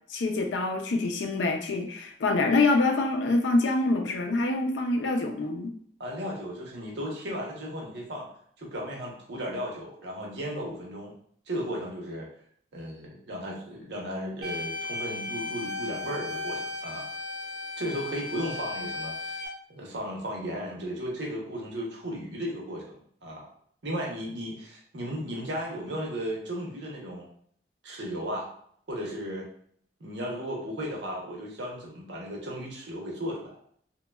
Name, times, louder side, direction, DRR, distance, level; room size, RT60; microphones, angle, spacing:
voice 1, 0.1-5.7, left 2 dB, 90° left, 4 dB, 0.4 m, -25 dB
voice 2, 6.0-8.3 8.6-11.1 11.5-12.3 12.7-17.0 17.8-19.4 19.7-23.4 23.8-27.3 27.8-28.5 28.9-29.5 30.0-33.8, equal, 80° right, -2 dB, 0.8 m, -35 dB
sound 1, 14.4-19.5, left 2 dB, 25° right, 0.9 m, -35 dB
2.9 x 2.2 x 2.2 m, 0.62 s
head